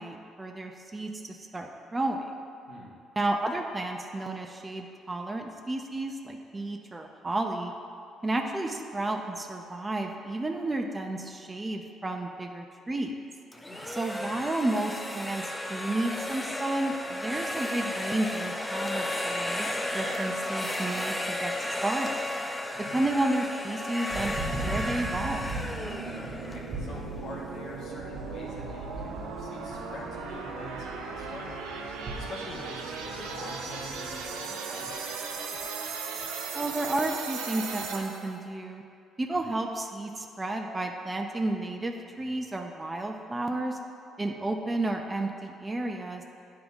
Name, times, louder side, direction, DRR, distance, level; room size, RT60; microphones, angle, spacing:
voice 1, 0.0-2.3 3.2-7.7 8.2-13.2 13.9-19.7 19.9-21.5 21.8-22.2 22.9-24.3 24.6-25.5 36.5-38.8 39.2-43.8 44.2-46.2, right 2 dB, 25° right, 3 dB, 0.7 m, -32 dB
sound 1, 13.5-27.4, left 1 dB, 15° left, 0.6 m, -33 dB
voice 2, 13.7-14.4 22.7-23.0 26.1-35.2 39.3-39.4, left 2 dB, 65° left, -4 dB, 1.5 m, -45 dB
sound 2, 24.1-34.3, right 2 dB, 50° right, 1.4 m, -40 dB
sound 3, 24.4-38.4, right 5 dB, 85° right, 0.6 m, -38 dB
9.5 x 3.8 x 3.6 m, 2.4 s
supercardioid pair, 60°, 0 cm